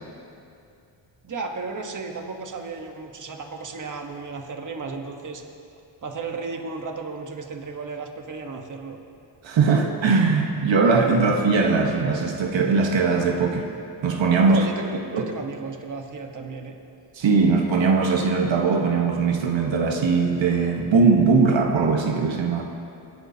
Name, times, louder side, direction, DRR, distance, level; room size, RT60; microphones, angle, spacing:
voice 1, 1.2-5.4 6.0-9.0 14.4-16.8, right 4 dB, 40° right, 3 dB, 1.2 m, -34 dB
voice 2, 9.4-13.7 14.0-14.6 15.1-15.2 17.2-22.6, right 4 dB, 80° right, 2 dB, 1.3 m, -20 dB
26.5 x 11.0 x 2.8 m, 2.6 s
wide cardioid pair, 95°, 45 cm